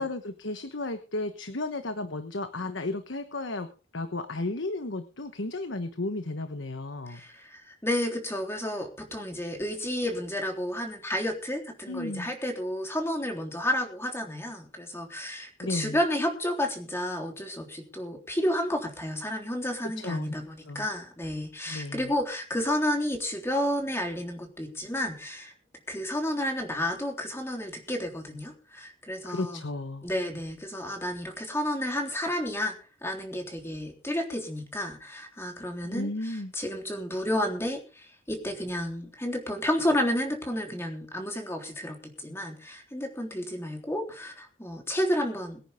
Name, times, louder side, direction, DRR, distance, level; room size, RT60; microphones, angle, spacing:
voice 1, 0.0-3.7 3.9-7.2 11.9-12.3 15.6-16.0 19.8-20.3 20.7-20.9 21.7-22.1 29.2-30.1 35.9-36.5, left 2 dB, 65° left, 9 dB, 1.2 m, -33 dB
voice 2, 7.1-25.5 25.9-29.7 30.0-32.8 33.0-45.6, left 1 dB, 15° left, 2 dB, 3.5 m, -31 dB
23.0 x 10.0 x 3.7 m, 0.34 s
head